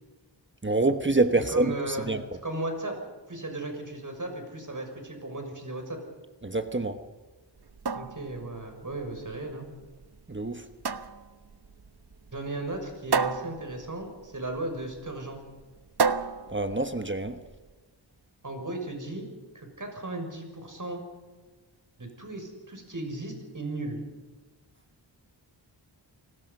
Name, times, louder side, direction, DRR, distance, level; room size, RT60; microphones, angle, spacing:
voice 1, 0.6-2.2 6.4-7.0 10.3-10.6 16.5-17.4, right 2 dB, 25° right, 1.2 m, -26 dB
voice 2, 1.5-2.1 2.4-3.0 3.3-6.0 7.9-9.7 12.3-15.4 18.4-19.3 19.5-21.0 22.0-24.0, right 2 dB, 45° right, 6.3 m, -36 dB
sound 1, 7.6-17.6, right 5 dB, 60° right, 1.1 m, -33 dB
29.5 x 19.5 x 5.5 m
wide cardioid pair, 85°, 44 cm